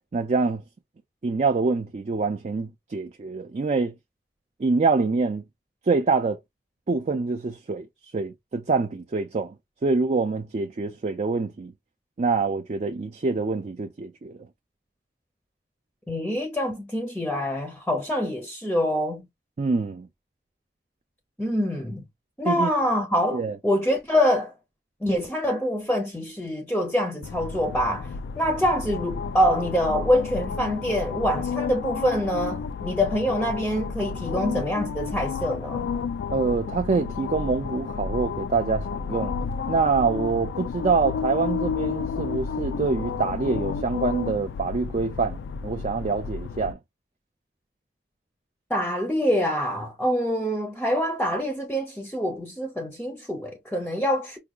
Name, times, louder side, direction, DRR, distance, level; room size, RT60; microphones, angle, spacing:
voice 1, 0.1-0.6 1.2-3.9 4.6-5.4 5.8-6.4 6.9-7.9 8.1-9.5 9.8-11.7 12.2-14.4 19.6-20.1 22.4-22.7 23.3-23.6 36.3-39.4 39.7-46.8, right 4 dB, 40° right, 0.4 m, -25 dB
voice 2, 16.1-19.3 21.4-22.0 22.4-24.5 25.0-28.1 28.4-35.9 48.7-54.4, equal, 5° left, 0.6 m, -25 dB
sound 1, 27.2-46.7, left 5 dB, 75° left, 0.3 m, -31 dB
4.8 x 2.3 x 2.4 m
head